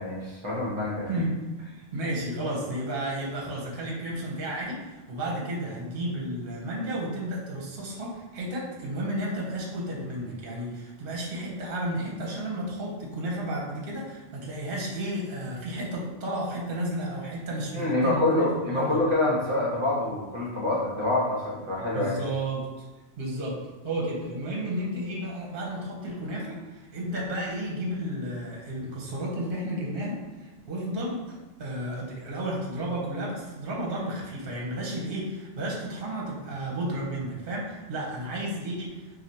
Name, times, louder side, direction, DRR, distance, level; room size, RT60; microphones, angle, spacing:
voice 1, 0.0-1.1 17.7-22.2, left 2 dB, 30° right, -4 dB, 0.8 m, -26 dB
voice 2, 1.1-1.4 1.7-18.5 18.7-19.0 21.9-22.9 23.2-23.6 23.8-39.0, right 1 dB, 60° right, -3 dB, 0.9 m, -32 dB
3.2 x 2.4 x 2.7 m, 1.1 s
omnidirectional pair, 1.1 m